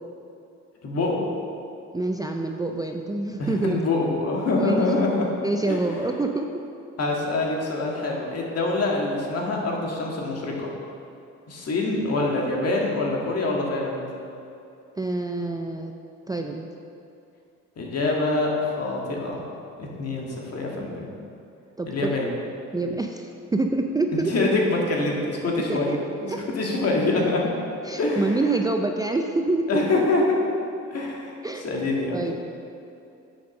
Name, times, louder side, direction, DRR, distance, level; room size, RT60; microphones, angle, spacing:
voice 1, 0.8-1.3 3.4-5.3 5.7-5.8 7.0-10.7 11.5-14.0 17.8-19.4 19.8-21.1 21.9-22.3 24.1-26.3 26.5-27.5 28.0-28.6 29.7-30.4 30.9-32.2, left 2 dB, 50° left, -2 dB, 1.8 m, -25 dB
voice 2, 1.9-3.8 4.6-4.8 5.4-6.5 15.0-15.9 16.3-16.7 21.8-22.3 22.7-24.3 25.7-26.0 26.3-26.4 27.8-29.9 31.4-31.7 32.1-32.4, right 2 dB, 10° right, 3 dB, 0.4 m, -26 dB
7.1 x 5.2 x 6.3 m, 2.7 s
cardioid pair, 80°, 31 cm